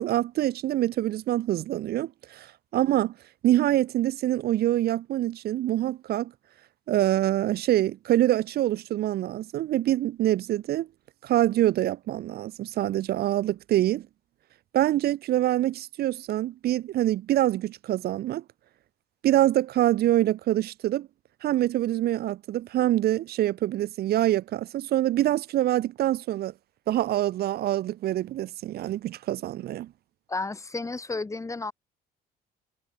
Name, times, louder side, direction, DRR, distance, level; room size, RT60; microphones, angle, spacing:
voice 1, 0.0-3.1 3.4-6.3 6.9-10.9 11.2-14.1 14.7-18.4 19.2-21.1 21.4-26.5 26.9-29.9, right 13 dB, 65° right, 2.0 m, -25 dB
voice 2, 30.3-31.7, left 3 dB, 20° left, 3.5 m, -32 dB
cardioid pair, 110°, 17 cm